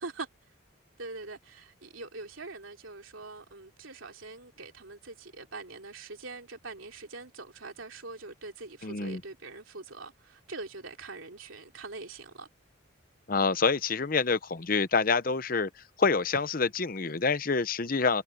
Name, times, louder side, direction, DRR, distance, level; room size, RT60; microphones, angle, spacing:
voice 1, 1.0-12.5, right 3 dB, 85° right, 3.1 m, -43 dB
voice 2, 8.8-9.2 13.3-15.7 16.0-18.2, left 4 dB, 45° left, 0.8 m, -27 dB
head